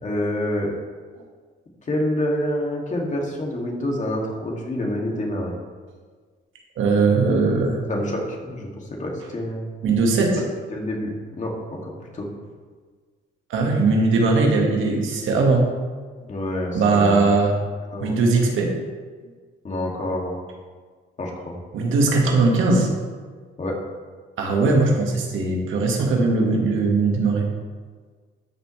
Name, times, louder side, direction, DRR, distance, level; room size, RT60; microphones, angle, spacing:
voice 1, 0.0-0.7 1.9-5.5 7.9-9.7 10.7-11.1 11.4-12.3 16.3-17.4 17.9-18.2 19.6-20.3 21.2-21.6 23.6-23.7, left 1 dB, 40° left, -1 dB, 2.4 m, -27 dB
voice 2, 6.8-7.8 9.8-10.4 13.5-15.7 16.7-17.6 18.0-18.7 21.7-22.9 24.4-27.5, right 3 dB, 80° right, 0 dB, 1.8 m, -19 dB
13.0 x 7.1 x 3.3 m, 1.5 s
cardioid pair, 90°, 20 cm